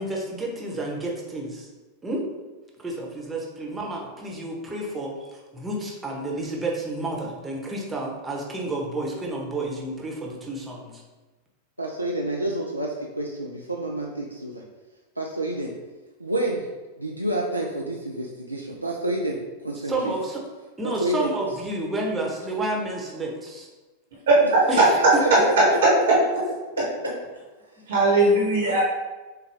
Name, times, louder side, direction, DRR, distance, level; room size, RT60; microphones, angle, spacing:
voice 1, 0.0-1.7 2.0-2.3 2.8-11.0 19.8-20.4 20.8-23.7 24.7-25.4, right 2 dB, 10° right, -2 dB, 1.0 m, -30 dB
voice 2, 11.8-14.6 15.2-15.8 16.2-16.7 17.0-20.1 20.8-21.3 24.7-25.5 28.7-28.8, right 1 dB, 85° right, -1 dB, 0.4 m, -29 dB
voice 3, 24.3-24.8 27.9-28.8, right 2 dB, 60° right, -4 dB, 1.0 m, -18 dB
6.5 x 2.3 x 3.4 m, 1.2 s
figure-of-eight pair, 90°, 0 cm